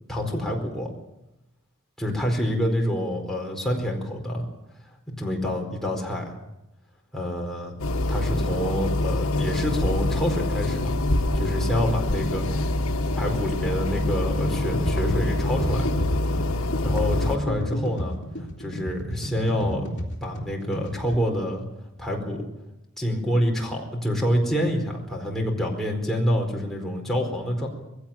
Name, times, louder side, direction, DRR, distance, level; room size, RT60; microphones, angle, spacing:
voice 1, 0.1-0.9 2.0-4.5 5.1-6.3 7.1-7.7 8.1-10.9 11.3-12.5 13.2-15.8 16.8-18.2 18.6-19.9 20.2-21.6 22.0-22.4 23.0-27.7, equal, ahead, -1 dB, 4.5 m, -27 dB
sound 1, 7.8-17.4, left 1 dB, 75° left, 1.4 m, -25 dB
sound 2, 14.6-21.2, equal, 55° left, 3.1 m, -32 dB
21.5 x 16.5 x 8.9 m, 0.91 s
head